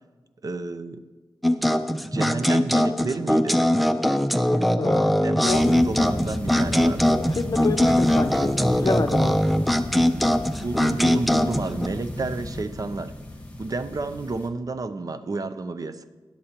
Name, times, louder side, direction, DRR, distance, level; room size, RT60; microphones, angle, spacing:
voice 1, 0.4-1.0 2.0-3.6 5.2-7.2 9.2-9.4 10.6-13.1 13.6-16.0, right 3 dB, 50° right, 11 dB, 0.6 m, -30 dB
sound 1, 1.4-11.9, equal, ahead, 0.6 m, -21 dB
voice 2, 4.8-5.6 7.0-9.4, left 4 dB, 50° left, 9 dB, 0.7 m, -28 dB
sound 2, 5.5-14.5, left 1 dB, 15° left, 1.7 m, -33 dB
13.0 x 10.0 x 2.9 m, 1.3 s
cardioid pair, 60°, 8 cm